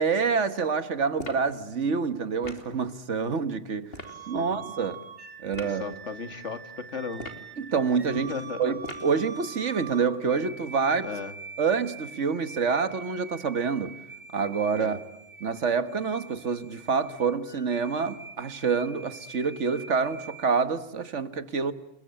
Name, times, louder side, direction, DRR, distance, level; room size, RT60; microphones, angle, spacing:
voice 1, 0.0-3.9 4.3-5.0 5.4-5.9 7.6-8.3 8.6-11.1 11.6-14.0 14.3-15.0 15.4-21.7, right 5 dB, 80° right, 1.8 m, -27 dB
sound 1, 1.2-1.5 2.4-2.7 3.9-4.2 5.5-5.8 7.1-7.5 8.8-9.2, left 2 dB, 55° left, 3.2 m, -40 dB
sound 2, 4.0-20.4, right 5 dB, 40° right, 2.9 m, -44 dB
voice 2, 5.6-7.3 8.1-8.6 11.0-11.3 14.7-15.0, left 5 dB, 80° left, 2.3 m, -36 dB
29.5 x 22.0 x 8.9 m
omnidirectional pair, 1.2 m